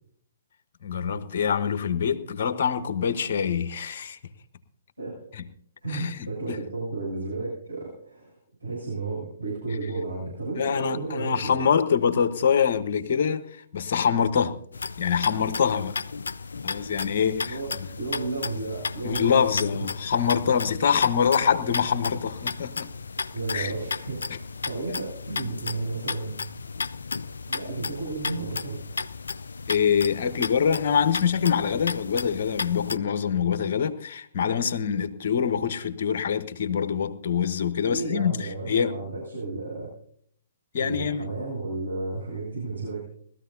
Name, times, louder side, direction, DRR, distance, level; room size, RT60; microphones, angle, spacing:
voice 1, 0.8-4.2 5.3-5.4 5.9-6.6 10.6-13.4 13.7-14.6 15.0-16.0 16.6-17.6 19.0-22.9 23.5-23.7 24.9-25.0 29.7-39.0 40.7-41.3, left 7 dB, 55° left, 1.1 m, -25 dB
voice 2, 5.8-8.3 8.6-11.6 17.4-17.7 18.0-19.6 23.3-24.3 24.6-26.3 27.5-28.8 37.9-39.9 40.7-43.1, right 3 dB, 90° right, 7.3 m, -33 dB
sound 1, 14.7-33.0, left 4 dB, 70° left, 0.4 m, -34 dB
20.0 x 14.0 x 2.7 m
figure-of-eight pair, 120°, 0 cm